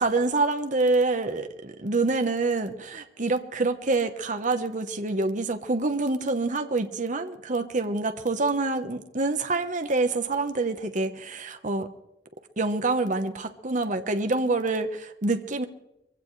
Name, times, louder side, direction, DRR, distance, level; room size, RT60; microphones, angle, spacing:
voice 1, 0.0-11.9 12.6-15.7, right 3 dB, 45° right, 7 dB, 1.1 m, -26 dB
23.0 x 16.5 x 3.3 m, 0.86 s
head